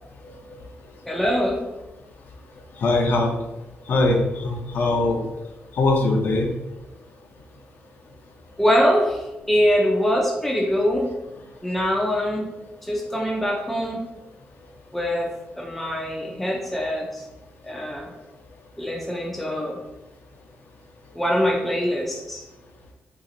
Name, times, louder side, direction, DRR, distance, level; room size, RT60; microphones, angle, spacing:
voice 1, 1.1-1.6 8.6-11.1 11.6-12.5 12.8-14.0 14.9-15.3 15.6-17.2 17.6-18.1 18.8-19.8 21.1-22.4, equal, 5° left, -1 dB, 0.4 m, -23 dB
voice 2, 2.8-3.3 3.9-5.2 5.8-6.5, left 2 dB, 55° left, 1 dB, 0.6 m, -21 dB
2.8 x 2.4 x 3.8 m, 0.99 s
wide cardioid pair, 160°, 4 cm